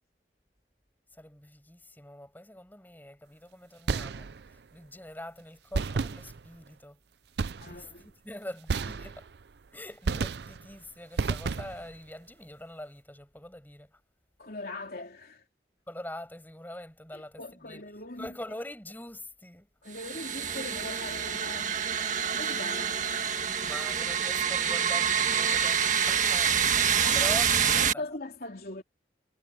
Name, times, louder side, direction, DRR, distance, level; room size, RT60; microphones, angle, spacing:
voice 1, 1.1-7.0 7.6-9.3 9.7-14.0 15.9-17.8 18.2-19.7 22.6-23.0 23.6-28.0, left 1 dB, 10° left, 6.5 m, -44 dB
sound 1, 3.9-4.6 5.7-6.7 7.4-8.0 8.7-9.5 10.1-10.8 11.2-12.0, right 4 dB, 65° right, 0.5 m, -32 dB
voice 2, 7.6-8.1 14.4-15.4 17.1-18.3 19.8-22.0 22.3-22.9 27.0-28.8, left 2 dB, 55° left, 3.6 m, -41 dB
sound 2, 19.9-27.9, right 7 dB, 45° right, 1.7 m, -27 dB
head